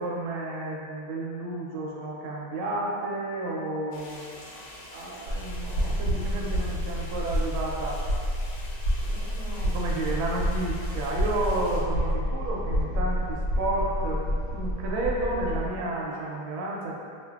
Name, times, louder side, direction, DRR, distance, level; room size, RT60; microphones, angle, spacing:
voice 1, 0.0-4.4 4.9-8.0 8.6-8.7 9.0-16.9, right 2 dB, 75° right, -3 dB, 1.3 m, -32 dB
sound 1, 3.9-11.8, left 1 dB, 80° left, 1.5 m, -46 dB
sound 2, 5.3-15.8, equal, 55° left, 1.1 m, -29 dB
4.5 x 2.5 x 2.3 m, 2.2 s
omnidirectional pair, 2.3 m